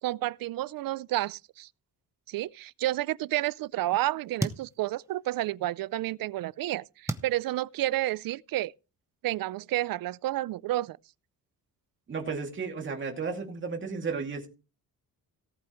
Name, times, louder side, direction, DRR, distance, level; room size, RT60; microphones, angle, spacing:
voice 1, 0.0-1.7 2.3-8.7 9.2-11.0, right 15 dB, 70° right, 0.5 m, -30 dB
sound 1, 4.1-5.8 6.3-8.4, right 2 dB, 10° right, 0.8 m, -38 dB
voice 2, 12.1-14.5, right 5 dB, 35° right, 2.5 m, -33 dB
18.0 x 8.2 x 3.1 m
wide cardioid pair, 165°, 36 cm